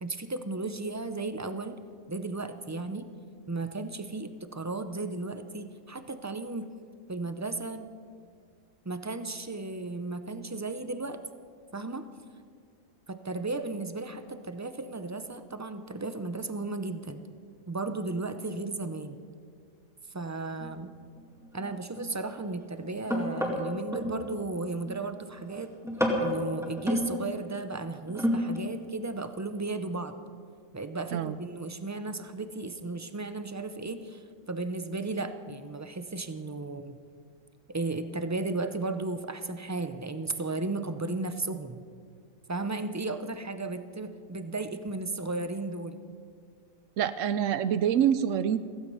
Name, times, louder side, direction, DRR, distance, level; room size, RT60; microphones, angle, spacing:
voice 1, 0.0-1.8 2.1-3.1 3.5-6.7 7.1-7.9 8.8-11.2 11.7-12.1 13.1-17.2 17.7-19.2 20.1-20.9 21.5-25.7 26.2-30.1 30.7-37.0 37.7-41.8 42.5-46.0, right 3 dB, 25° right, 10 dB, 0.3 m, -35 dB
sound 1, 20.6-20.7 21.2-24.2 24.6-25.0 25.4-25.6 25.8-27.1 28.0-28.6 29.0-29.1, left 1 dB, ahead, 2.2 m, -30 dB
voice 2, 47.0-48.6, right 9 dB, 80° right, 13 dB, 1.0 m, -26 dB
15.5 x 15.5 x 5.4 m, 2.1 s
omnidirectional pair, 1.3 m